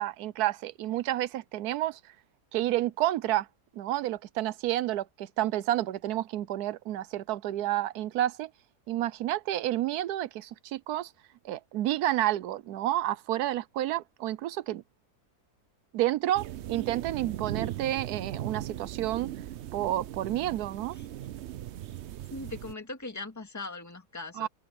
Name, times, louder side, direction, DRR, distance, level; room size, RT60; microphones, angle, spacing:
voice 1, 0.0-2.0 2.5-3.5 3.8-8.5 8.9-11.1 11.4-14.8 15.9-19.3 19.7-21.0 24.4-24.5, right 14 dB, 90° right, 1.2 m, -30 dB
sound 1, 16.3-22.7, right 12 dB, 65° right, 0.7 m, -38 dB
voice 2, 22.3-24.5, left 3 dB, 10° left, 2.1 m, -40 dB
omnidirectional pair, 1.6 m